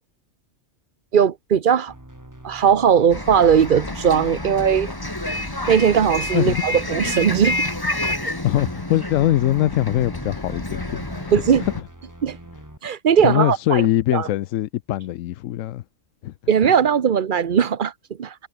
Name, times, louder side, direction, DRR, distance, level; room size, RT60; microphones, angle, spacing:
voice 1, 1.1-1.9 2.4-4.9 5.7-7.7 8.2-8.3 11.3-11.6 12.2-12.4 12.8-13.9 14.1-14.3 16.5-17.9 18.2-18.3, right 7 dB, 45° right, 0.9 m, -18 dB
sound 1, 1.9-12.8, right 1 dB, 15° right, 2.8 m, -45 dB
Bus, 3.1-11.8, left 1 dB, 15° left, 2.3 m, -29 dB
voice 2, 8.4-11.3 13.2-15.8 16.2-16.3, left 14 dB, 85° left, 1.0 m, -22 dB
omnidirectional pair, 1.3 m